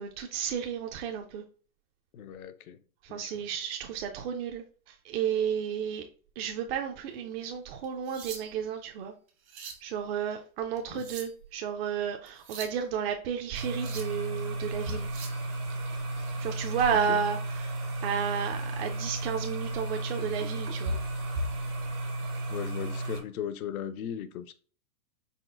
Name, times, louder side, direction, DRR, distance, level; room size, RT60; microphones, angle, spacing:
voice 1, 0.0-1.4 3.0-6.0 6.4-9.1 9.8-15.3 16.4-21.0, right 7 dB, 45° right, 0.5 m, -32 dB
voice 2, 2.1-2.8 3.1-3.4 10.9-11.1 16.9-17.2 22.5-24.5, left 9 dB, 75° left, 0.6 m, -37 dB
sound 1, 7.8-8.7 9.3-9.9 10.8-11.5 12.3-12.8 13.6-14.2 14.9-15.4 17.5-17.6 18.2-18.4 18.8-19.0 20.2-20.7 21.8-22.0, right 6 dB, 70° right, 1.5 m, -44 dB
sound 2, 13.5-23.2, right 1 dB, 90° right, 1.7 m, -33 dB
4.2 x 4.0 x 2.4 m
hypercardioid pair, 130°, 43 cm